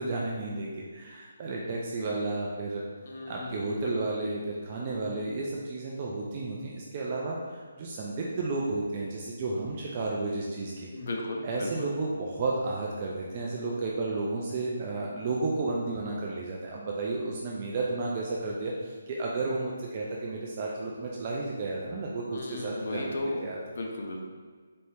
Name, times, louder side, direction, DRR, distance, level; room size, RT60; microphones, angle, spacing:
voice 1, 0.0-2.8 3.3-10.9 11.4-23.6, right 3 dB, 25° right, -3 dB, 0.3 m, -32 dB
voice 2, 3.0-3.9 10.9-11.9 22.3-23.5 23.8-24.2, left 2 dB, 45° left, 0 dB, 0.6 m, -35 dB
4.2 x 2.7 x 3.4 m, 1.5 s
hypercardioid pair, 175°, 0 cm